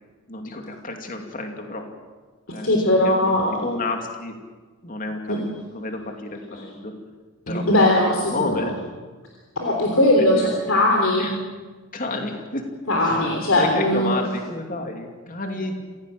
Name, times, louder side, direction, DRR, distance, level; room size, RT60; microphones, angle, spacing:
voice 1, 0.3-1.9 2.5-3.4 3.6-4.3 4.8-5.4 5.7-6.9 7.5-8.8 10.2-10.5 11.2-11.4 11.9-12.7 13.0-13.2 13.5-15.8, left 2 dB, 40° left, 3 dB, 2.6 m, -30 dB
voice 2, 2.6-3.5 5.3-5.4 7.5-8.6 9.6-11.3 12.9-14.2, left 1 dB, 65° left, 0 dB, 3.5 m, -19 dB
26.5 x 17.0 x 7.7 m, 1.4 s
head